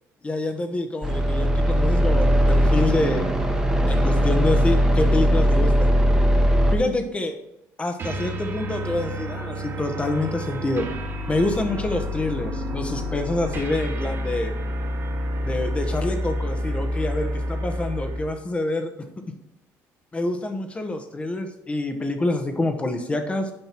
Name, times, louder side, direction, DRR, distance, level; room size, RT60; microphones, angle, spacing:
voice 1, 0.2-3.3 3.9-6.0 6.7-7.4 7.8-10.9 11.3-14.5 15.4-18.9 20.1-23.5, left 2 dB, 20° left, 7 dB, 1.2 m, -27 dB
sound 1, 1.0-6.8, equal, 10° right, 1.3 m, -19 dB
sound 2, 8.0-18.3, equal, 40° right, 1.7 m, -29 dB
8.9 x 5.7 x 4.5 m, 0.82 s
cardioid pair, 115°, 6 cm